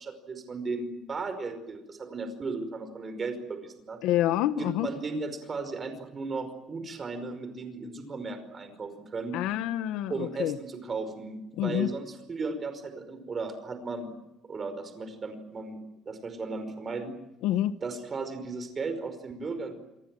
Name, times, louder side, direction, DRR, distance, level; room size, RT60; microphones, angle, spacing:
voice 1, 0.0-4.0 4.6-9.4 10.1-14.1 14.5-17.1 17.8-19.8, right 3 dB, 25° right, 9 dB, 5.2 m, -36 dB
voice 2, 4.0-4.9 9.3-10.6 11.6-11.9 17.4-17.8, left 13 dB, 85° left, 12 dB, 1.1 m, -27 dB
27.5 x 23.0 x 7.7 m, 0.93 s
cardioid pair, 160°, 0 cm